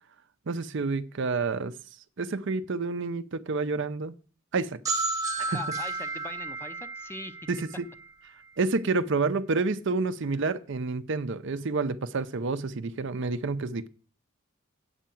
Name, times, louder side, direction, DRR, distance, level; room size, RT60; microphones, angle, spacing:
voice 1, 0.5-1.7 2.2-4.1 4.5-4.8 5.4-5.6 7.5-7.6 8.6-13.9, right 3 dB, 60° right, 0.6 m, -29 dB
sound 1, 4.8-8.5, right 3 dB, 15° right, 1.0 m, -33 dB
voice 2, 5.5-7.4, left 2 dB, 10° left, 0.5 m, -41 dB
8.1 x 5.6 x 7.5 m
head